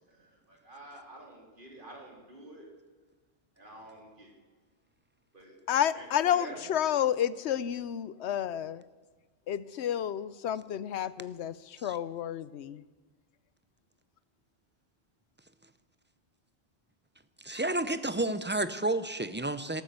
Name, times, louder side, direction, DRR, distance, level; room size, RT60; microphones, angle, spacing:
voice 1, 0.1-2.7 3.6-4.3 5.3-5.6 5.9-6.7, right 1 dB, 50° right, 0 dB, 3.7 m, -48 dB
voice 2, 5.7-8.8 9.5-12.8, left 10 dB, 80° left, 18 dB, 0.9 m, -30 dB
voice 3, 17.4-19.8, right 2 dB, 15° right, 12 dB, 0.5 m, -30 dB
13.0 x 13.0 x 8.2 m, 1.3 s
omnidirectional pair, 1.1 m